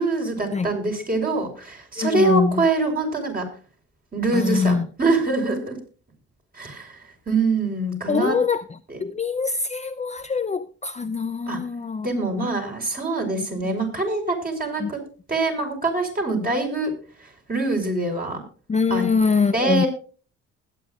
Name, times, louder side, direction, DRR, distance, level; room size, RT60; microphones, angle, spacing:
voice 1, 0.0-3.5 4.1-5.8 6.5-7.0 7.3-8.4 8.9-9.0 11.5-11.6 12.0-15.0 15.3-16.9 17.2-18.4 18.9-19.0 19.5-19.9, right 2 dB, 30° right, 5.3 m, -24 dB
voice 2, 2.0-2.7 4.3-4.9 8.1-8.6 9.0-12.1 13.4-13.7 14.8-14.9 18.7-19.8, left 5 dB, 25° left, 0.6 m, -23 dB
20.5 x 9.3 x 2.4 m
cardioid pair, 90°, 30 cm